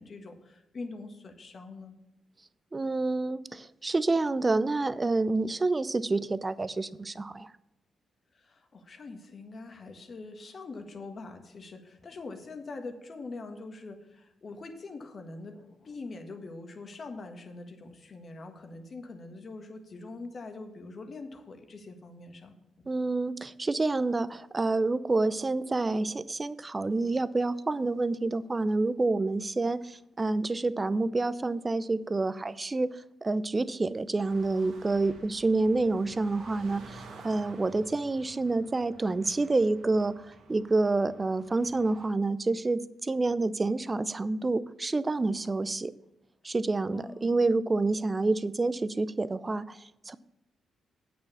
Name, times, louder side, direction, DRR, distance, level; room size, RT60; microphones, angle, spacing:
voice 1, 0.0-2.0 8.3-22.9 46.9-47.5, left 3 dB, 50° left, 6 dB, 1.6 m, -43 dB
voice 2, 2.7-7.5 22.9-45.9 46.4-50.1, right 3 dB, 30° right, 16 dB, 0.6 m, -28 dB
sound 1, 34.2-42.1, right 3 dB, 70° right, 1.5 m, -51 dB
8.8 x 6.3 x 7.0 m, 0.89 s
hypercardioid pair, 45°, 0 cm